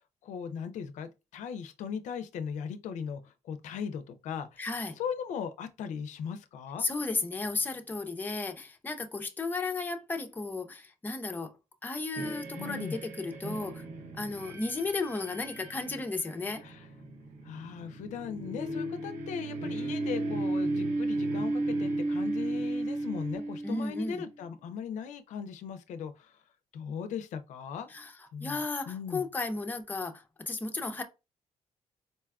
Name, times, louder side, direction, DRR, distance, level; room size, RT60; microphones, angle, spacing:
voice 1, 0.0-4.6 5.0-6.9 12.5-13.0 16.6-16.9 17.4-26.4 26.7-27.9 28.3-29.3, left 7 dB, 85° left, 0.4 m, -38 dB
voice 2, 4.6-5.0 6.8-11.5 11.8-13.8 14.2-16.6 23.6-24.2 27.9-28.1 28.4-31.0, left 3 dB, 15° left, 0.4 m, -34 dB
sound 1, 12.2-24.2, right 2 dB, 75° right, 0.7 m, -34 dB
4.1 x 2.3 x 2.2 m
cardioid pair, 130°, 12 cm